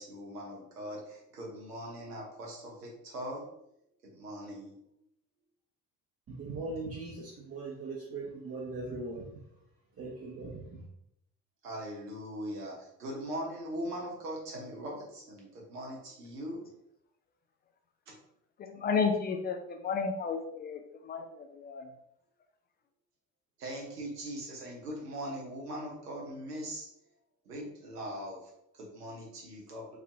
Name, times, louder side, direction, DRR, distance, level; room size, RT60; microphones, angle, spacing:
voice 1, 0.0-3.6 4.0-4.8 11.6-16.7 18.1-18.2 23.6-26.9 27.4-30.0, equal, 85° right, 0.8 m, -41 dB
voice 2, 6.3-9.6 9.9-10.9, right 3 dB, 30° right, 0.7 m, -40 dB
voice 3, 18.6-21.9, left 5 dB, 25° left, 0.3 m, -32 dB
3.2 x 2.5 x 2.4 m
figure-of-eight pair, 50°, 45 cm